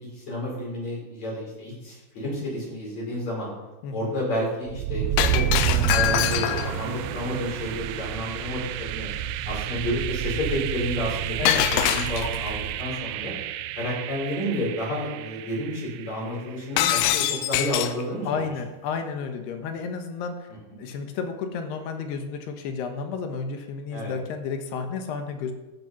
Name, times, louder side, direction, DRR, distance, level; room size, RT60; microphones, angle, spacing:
voice 1, 0.0-3.5 3.9-9.1 9.5-13.3 13.7-18.4 23.9-24.1, left 1 dB, 40° left, -5 dB, 6.9 m, -30 dB
sound 1, 4.7-16.5, right 11 dB, 80° right, 2.4 m, -30 dB
Shatter, 5.2-6.8 11.5-12.5 16.8-18.0, left 12 dB, 90° left, 3.0 m, -24 dB
voice 2, 11.4-11.7 18.3-20.5 20.8-25.5, left 5 dB, 75° left, 6 dB, 3.1 m, -32 dB
14.0 x 9.4 x 5.9 m, 1.1 s
omnidirectional pair, 5.1 m